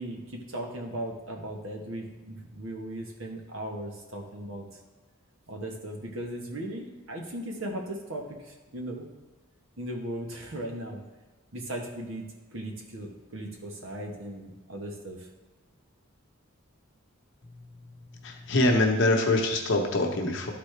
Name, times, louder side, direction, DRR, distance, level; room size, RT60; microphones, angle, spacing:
voice 1, 0.0-4.7 5.5-9.1 9.8-11.0 11.5-12.3 12.5-15.3, right 1 dB, 65° right, 1 dB, 1.3 m, -37 dB
voice 2, 18.2-20.5, left 2 dB, 60° left, 2 dB, 1.0 m, -24 dB
12.0 x 4.1 x 3.3 m, 1.2 s
head